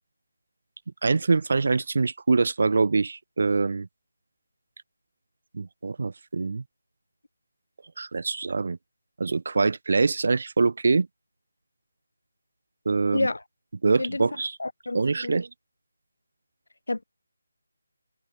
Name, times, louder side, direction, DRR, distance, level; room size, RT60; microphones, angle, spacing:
voice 1, 1.0-3.9 5.5-6.6 8.0-8.8 9.2-11.1 12.9-13.3 13.8-14.6 14.9-15.5, right 4 dB, 60° right, 0.8 m, -24 dB
voice 2, 13.1-13.4 14.0-14.3 14.6-15.4 16.9-17.0, left 2 dB, 85° left, 1.6 m, -29 dB
figure-of-eight pair, 165°, 0 cm